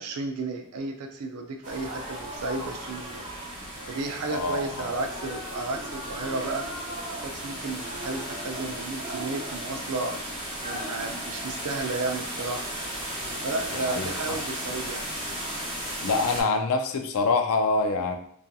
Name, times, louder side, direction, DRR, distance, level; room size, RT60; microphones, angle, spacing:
voice 1, 0.0-3.2 3.9-6.7 7.2-10.2 10.6-12.7 13.4-15.1, right 3 dB, 75° right, 4 dB, 0.4 m, -33 dB
sound 1, 1.6-16.4, right 1 dB, 30° right, 0.8 m, -35 dB
voice 2, 4.3-4.9 13.7-14.4 16.0-18.2, left 3 dB, 70° left, 5 dB, 0.4 m, -26 dB
2.7 x 2.4 x 2.3 m, 0.64 s
head